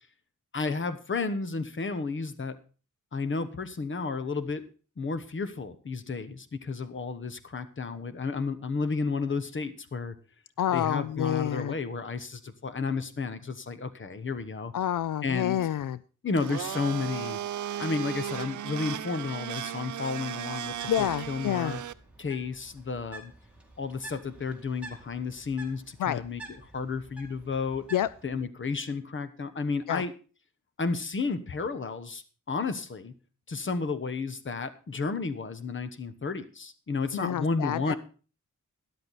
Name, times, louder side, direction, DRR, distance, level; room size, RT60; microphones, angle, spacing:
voice 1, 0.5-2.6 3.1-4.6 5.0-10.2 10.7-14.7 15.2-15.6 16.2-17.4 17.8-21.8 22.2-23.3 23.8-26.4 26.7-27.8 28.2-30.1 30.8-33.1 33.5-37.9, left 4 dB, 40° left, 12 dB, 1.1 m, -32 dB
voice 2, 10.6-11.8 14.7-16.0 20.9-21.8 26.0-26.2 27.9-28.1 29.9-30.0 37.1-37.9, left 11 dB, 85° left, 17 dB, 0.5 m, -28 dB
Domestic sounds home sounds, 16.3-21.9, right 10 dB, 70° right, 0.5 m, -35 dB
Bird, 20.6-28.4, right 2 dB, 5° right, 2.4 m, -50 dB
13.0 x 10.5 x 4.1 m, 0.36 s
wide cardioid pair, 155°, 31 cm